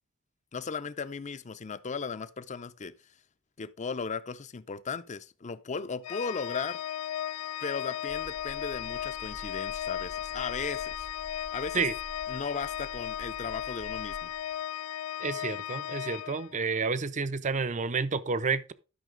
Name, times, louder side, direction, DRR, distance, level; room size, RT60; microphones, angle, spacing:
voice 1, 0.5-2.9 3.6-6.8 7.6-11.1 11.5-11.9 12.3-14.3, left 5 dB, 35° left, 0.5 m, -36 dB
Organ, 6.0-16.9, left 11 dB, 85° left, 0.4 m, -36 dB
sound 1, 8.1-14.6, right 1 dB, 90° right, 3.4 m, -49 dB
voice 2, 15.2-18.7, right 4 dB, 35° right, 0.6 m, -30 dB
12.0 x 5.8 x 3.8 m
head